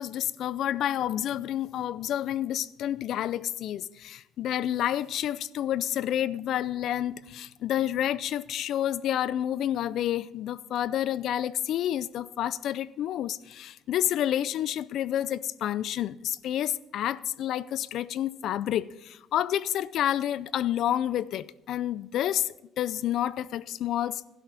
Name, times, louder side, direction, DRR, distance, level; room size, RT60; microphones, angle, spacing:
voice 1, 0.0-24.3, left 11 dB, 65° left, 0.4 m, -29 dB
16.0 x 11.5 x 4.1 m
cardioid pair, 120°, 0 cm